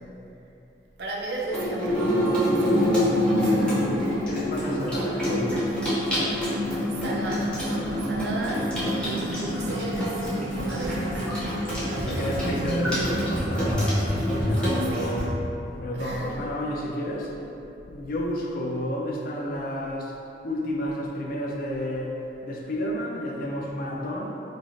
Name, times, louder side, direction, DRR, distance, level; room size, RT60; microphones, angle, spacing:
voice 1, 1.0-3.9 7.0-7.7 8.1-10.2 10.7-11.3 11.8-13.1 14.6-15.2 15.9-16.4, right 2 dB, 65° right, -2 dB, 0.4 m, -34 dB
Water tap faucet / Sink (filling or washing), 1.4-15.2, equal, 5° left, 0.6 m, -26 dB
voice 2, 4.3-5.8 12.0-14.0 14.3-15.4 15.8-17.3 17.9-20.1 20.4-24.4, left 1 dB, 50° left, -2 dB, 0.4 m, -31 dB
3.0 x 2.4 x 2.6 m, 2.8 s
head